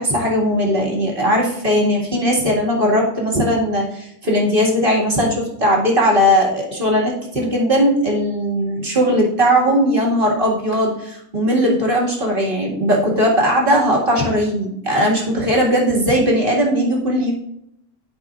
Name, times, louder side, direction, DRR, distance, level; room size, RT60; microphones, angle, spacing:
voice 1, 0.0-17.3, equal, 40° right, -3 dB, 2.2 m, -18 dB
13.5 x 5.2 x 2.5 m, 0.76 s
omnidirectional pair, 1.5 m